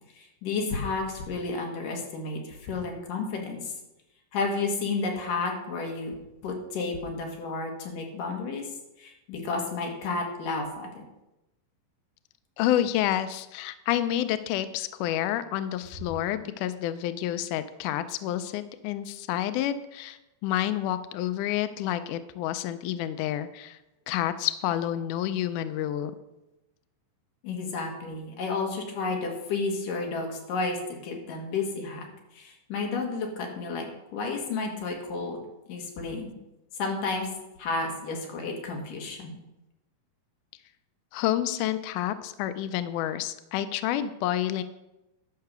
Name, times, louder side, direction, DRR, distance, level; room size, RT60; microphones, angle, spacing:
voice 1, 0.2-3.7 4.3-6.2 6.4-8.6 9.0-11.0 27.4-30.8 31.0-32.1 32.3-33.9 34.1-35.4 35.7-36.3 36.8-37.3 37.6-39.4, left 3 dB, 65° left, 1 dB, 3.3 m, -31 dB
voice 2, 12.6-23.8 24.1-26.1 41.1-44.6, left 12 dB, 90° left, 12 dB, 1.8 m, -29 dB
11.5 x 5.8 x 6.7 m, 0.94 s
omnidirectional pair, 4.2 m